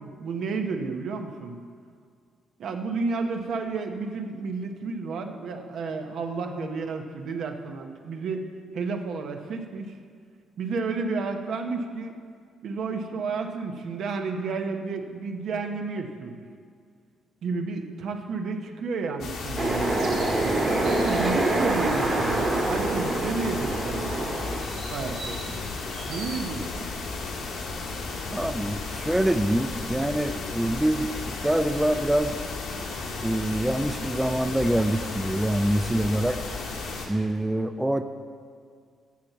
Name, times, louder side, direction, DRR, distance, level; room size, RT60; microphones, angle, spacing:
voice 1, 0.0-1.6 2.6-8.5 8.7-9.9 10.6-12.2 12.6-16.4 17.4-20.3 20.8-24.1 24.9-25.6 26.1-26.9, right 4 dB, 70° right, 5 dB, 0.9 m, -31 dB
sound 1, 19.2-37.1, left 3 dB, 80° left, 1.6 m, -34 dB
sound 2, 19.6-24.6, right 2 dB, 35° right, 1.6 m, -26 dB
sound 3, 19.9-21.3 24.5-26.4, right 3 dB, 90° right, 2.4 m, -42 dB
voice 2, 28.3-32.4 33.2-36.4 37.1-38.0, right 1 dB, 5° right, 9 dB, 0.4 m, -25 dB
8.5 x 5.9 x 7.4 m, 2.1 s
cardioid pair, 90°, 0 cm